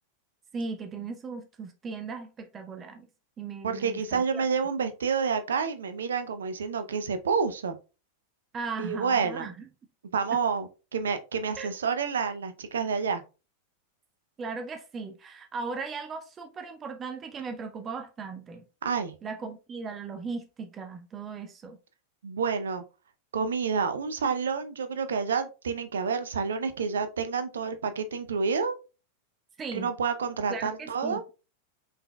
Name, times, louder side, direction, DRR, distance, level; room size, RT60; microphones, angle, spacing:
voice 1, 0.5-3.1 3.4-4.4 8.5-9.5 10.3-10.4 11.6-11.7 14.4-18.6 19.2-21.8 29.6-29.9 30.5-31.3, right 4 dB, 25° right, 0.6 m, -37 dB
voice 2, 3.6-7.8 8.8-9.5 10.1-13.2 18.8-19.1 22.2-22.8 23.3-28.7 29.7-31.2, right 5 dB, 65° right, 0.6 m, -29 dB
5.5 x 4.0 x 2.2 m
figure-of-eight pair, 90°, 0 cm